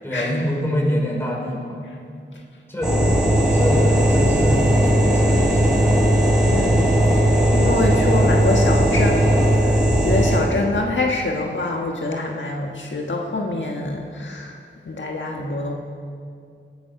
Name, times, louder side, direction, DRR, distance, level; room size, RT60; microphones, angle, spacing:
voice 1, 0.0-2.3 2.7-3.0 3.5-6.0, equal, 10° left, -3 dB, 5.3 m, -26 dB
sound 1, 2.8-10.4, right 1 dB, 5° right, 5.0 m, -17 dB
voice 2, 6.5-14.6 14.8-15.7, left 2 dB, 70° left, 0 dB, 1.4 m, -25 dB
19.5 x 11.5 x 6.0 m, 2.4 s
wide cardioid pair, 50°, 20 cm